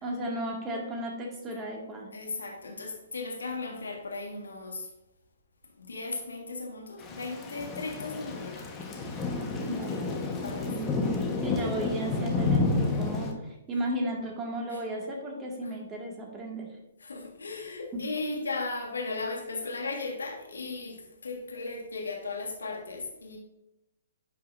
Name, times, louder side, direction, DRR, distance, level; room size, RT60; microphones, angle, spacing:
voice 1, 0.0-2.1 9.6-10.0 10.7-10.9 11.4-16.7 17.9-18.0, right 1 dB, 20° right, -1 dB, 2.0 m, -34 dB
voice 2, 2.1-4.9 5.8-8.9 10.4-10.7 14.7-14.8 15.6-15.7 17.0-23.4, left 3 dB, 85° left, 1 dB, 1.8 m, -36 dB
Thunder / Rain, 7.0-13.3, left 3 dB, 20° left, 1.4 m, -30 dB
10.5 x 5.6 x 2.7 m, 0.91 s
hypercardioid pair, 135°, 0 cm